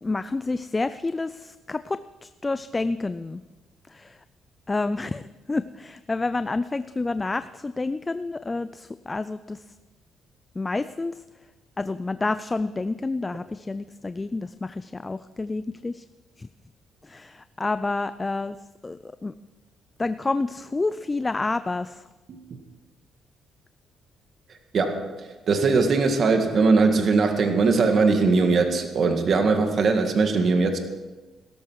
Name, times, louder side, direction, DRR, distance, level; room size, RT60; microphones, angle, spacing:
voice 1, 0.0-3.4 3.9-4.2 4.7-9.6 10.6-11.2 11.8-16.0 16.4-16.5 17.0-18.6 18.8-19.3 20.0-22.0, left 3 dB, 20° left, 13 dB, 0.4 m, -29 dB
voice 2, 24.7-25.1 25.5-30.8, right 4 dB, 55° right, 6 dB, 1.9 m, -20 dB
17.0 x 13.0 x 4.7 m, 1.2 s
cardioid pair, 90°, 0 cm